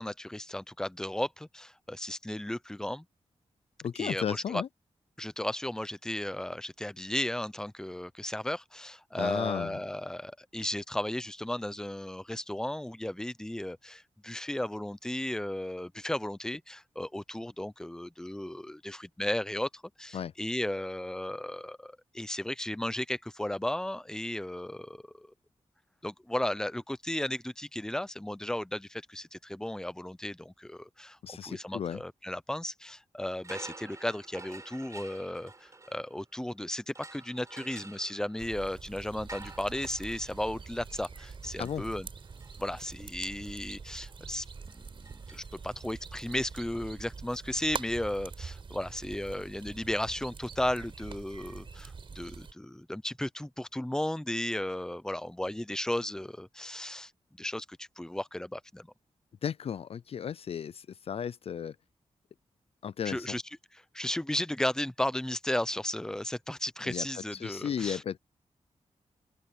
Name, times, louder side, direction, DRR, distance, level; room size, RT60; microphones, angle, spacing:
voice 1, 0.0-3.1 3.9-4.6 5.2-25.3 26.0-42.1 42.6-44.4 44.7-57.1 57.4-58.9 63.0-63.4 63.9-68.0, left 1 dB, 5° left, 0.7 m, -35 dB
voice 2, 3.8-4.7 9.2-9.8 20.1-20.3 31.2-32.0 41.6-41.8 59.4-61.8 62.8-63.4 66.9-67.1 67.3-68.2, left 8 dB, 55° left, 0.4 m, -34 dB
sound 1, 33.4-36.5 36.9-46.0, right 3 dB, 25° right, 6.3 m, -51 dB
sound 2, 38.4-52.5, right 5 dB, 45° right, 4.5 m, -45 dB
open air
wide cardioid pair, 150°, 12 cm